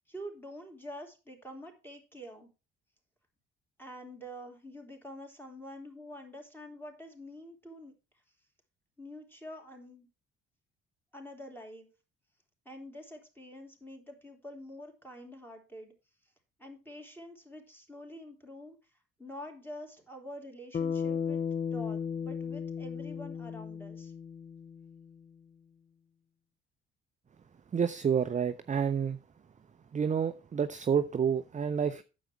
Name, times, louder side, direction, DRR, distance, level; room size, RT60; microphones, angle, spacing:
voice 1, 0.1-2.5 3.8-7.9 9.0-10.1 11.1-11.9 12.6-15.9 16.6-18.8 19.2-21.4 21.7-24.1, equal, 5° left, 3.3 m, -46 dB
Bass guitar, 20.7-25.1, left 6 dB, 25° left, 0.6 m, -35 dB
voice 2, 27.7-29.2 29.9-32.0, right 7 dB, 25° right, 0.6 m, -29 dB
9.3 x 7.3 x 4.6 m
figure-of-eight pair, 45°, 31 cm